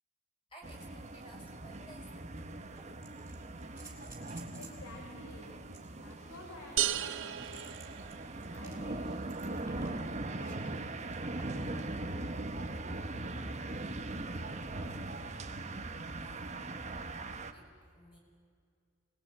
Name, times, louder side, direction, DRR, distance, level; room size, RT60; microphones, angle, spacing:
voice 1, 0.5-2.2 16.2-16.9 17.5-18.2, equal, 25° left, -1 dB, 6.3 m, -56 dB
sound 1, 0.6-17.5, right 2 dB, 35° right, 1.1 m, -40 dB
sound 2, 2.8-4.9 5.7-10.7 11.4-11.7 13.4-13.5, right 3 dB, 10° right, 3.6 m, -55 dB
voice 2, 4.5-5.5 5.8-7.6 8.5-10.8 11.3-13.8, left 1 dB, 85° left, -1 dB, 4.3 m, -52 dB
sound 3, 6.8-8.6, right 12 dB, 60° right, 0.8 m, -35 dB
25.0 x 20.5 x 8.9 m, 2.3 s
head